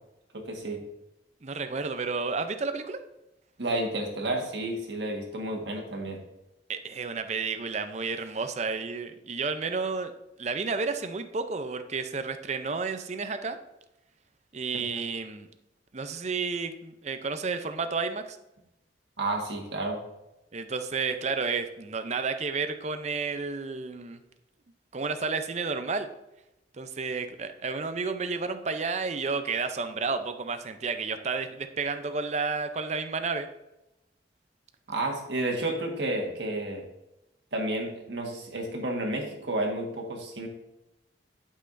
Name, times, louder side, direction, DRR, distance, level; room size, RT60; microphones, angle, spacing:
voice 1, 0.3-0.8 3.6-6.2 14.7-14.8 19.2-20.0 34.9-36.9 37.5-40.5, right 1 dB, 70° right, 1 dB, 1.6 m, -31 dB
voice 2, 1.4-3.0 6.7-10.1 10.4-13.6 14.5-15.5 15.9-18.4 20.5-24.2 24.9-26.1 26.8-33.5, right 4 dB, 40° right, 8 dB, 0.6 m, -31 dB
11.5 x 5.7 x 2.6 m, 0.93 s
head